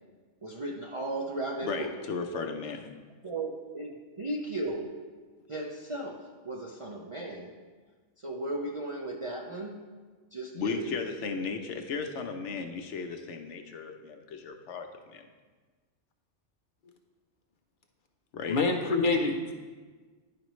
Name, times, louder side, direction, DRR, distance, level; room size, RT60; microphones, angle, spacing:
voice 1, 0.4-1.9 3.2-4.9 5.5-6.2 6.4-7.5 8.2-9.8 10.3-11.0, right 2 dB, 50° right, 0 dB, 0.3 m, -35 dB
voice 2, 1.6-2.9 10.5-15.3 18.3-18.6, left 4 dB, 75° left, 6 dB, 0.9 m, -35 dB
voice 3, 18.5-19.5, left 3 dB, 55° left, 4 dB, 0.6 m, -26 dB
10.5 x 5.1 x 3.1 m, 1.4 s
omnidirectional pair, 1.3 m